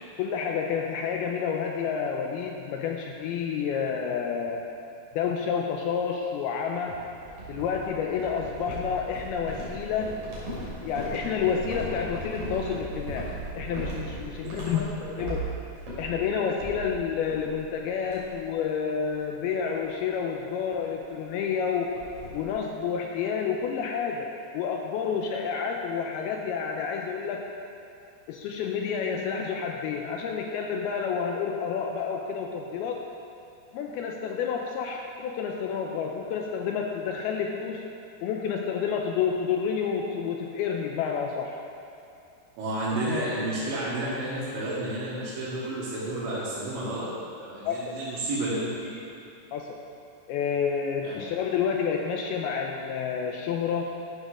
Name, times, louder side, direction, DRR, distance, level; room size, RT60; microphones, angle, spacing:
voice 1, 0.2-4.7 5.2-7.0 7.5-10.2 10.8-13.3 13.6-15.4 16.0-21.9 22.3-27.5 28.3-33.0 33.7-37.8 38.2-41.6 42.9-43.0 47.7-47.9 49.5-49.8 50.3-53.9, left 6 dB, 90° left, 1 dB, 2.2 m, -29 dB
sound 1, 6.9-17.7 18.0-18.5 18.8-19.1 19.5-19.7 20.8-20.9 21.2-21.3 21.5-22.5, right 2 dB, 40° right, 3.7 m, -38 dB
voice 2, 42.6-47.1 47.4-49.0 51.0-51.2, right 1 dB, 85° right, -11 dB, 4.4 m, -31 dB
13.0 x 6.6 x 6.0 m, 2.6 s
omnidirectional pair, 5.1 m